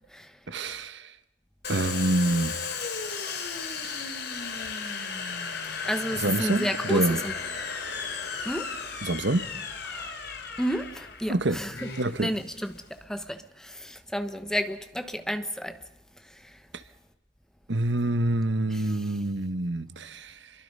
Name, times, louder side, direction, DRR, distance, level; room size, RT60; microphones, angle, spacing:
voice 1, 0.5-1.1 1.7-2.6 3.8-3.9 6.2-7.2 9.0-9.5 11.3-11.6 12.0-12.3 17.7-20.5, right 2 dB, 70° right, 1.2 m, -27 dB
Domestic sounds home sounds, 1.6-13.0, left 5 dB, 60° left, 3.2 m, -35 dB
voice 2, 5.9-7.3 8.4-8.7 9.9-10.1 10.6-11.9 12.2-13.4 13.8-15.8 18.7-18.8, equal, 5° left, 1.2 m, -31 dB
28.5 x 23.0 x 5.5 m
head